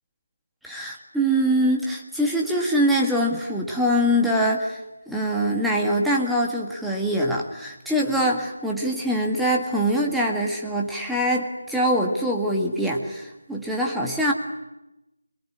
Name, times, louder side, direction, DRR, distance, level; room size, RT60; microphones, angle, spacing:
voice 1, 0.6-4.8 5.1-14.3, equal, ahead, -2 dB, 1.9 m, -23 dB
24.5 x 22.5 x 9.9 m, 0.95 s
figure-of-eight pair, 160°, 0 cm